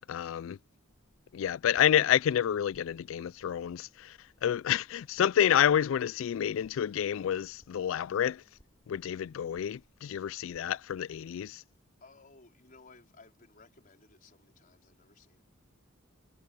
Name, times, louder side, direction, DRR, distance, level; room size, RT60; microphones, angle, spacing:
voice 1, 0.1-0.6 1.3-8.4 8.9-11.6, left 9 dB, 70° left, 0.3 m, -29 dB
sound 1, 0.9-10.6, equal, 20° left, 5.1 m, -68 dB
voice 2, 12.0-15.4, left 3 dB, 45° left, 4.4 m, -58 dB
head